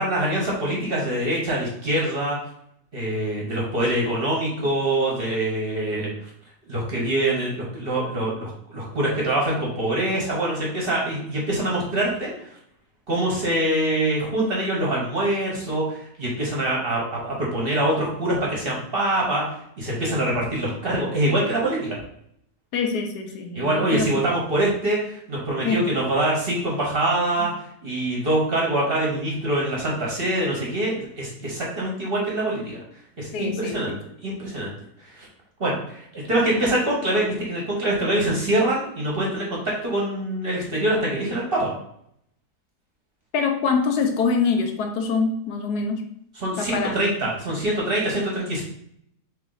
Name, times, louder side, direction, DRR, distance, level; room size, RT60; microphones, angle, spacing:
voice 1, 0.0-2.4 2.9-6.1 6.7-12.5 13.1-19.4 19.8-22.0 23.5-27.5 27.8-32.8 33.2-33.9 34.2-34.7 35.1-35.3 35.6-41.7 46.4-48.6, right 1 dB, 40° right, -3 dB, 1.1 m, -24 dB
voice 2, 22.7-24.3 25.6-25.9 33.3-34.0 43.3-46.0 46.6-46.9, left 4 dB, 75° left, 4 dB, 1.2 m, -25 dB
3.6 x 3.2 x 3.8 m, 0.71 s
omnidirectional pair, 1.7 m